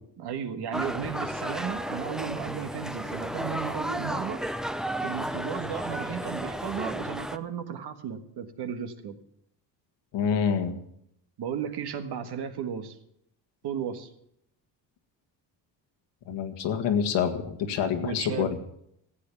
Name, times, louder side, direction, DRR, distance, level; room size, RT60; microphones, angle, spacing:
voice 1, 0.2-4.4 5.0-9.1 11.4-13.0 13.6-14.1 18.0-18.5, right 8 dB, 65° right, 8 dB, 1.6 m, -34 dB
sound 1, 0.7-7.4, equal, ahead, 0.5 m, -33 dB
voice 2, 10.1-10.7 16.3-18.5, left 7 dB, 85° left, 5 dB, 1.9 m, -27 dB
14.5 x 8.5 x 7.1 m, 0.74 s
cardioid pair, 100°, 42 cm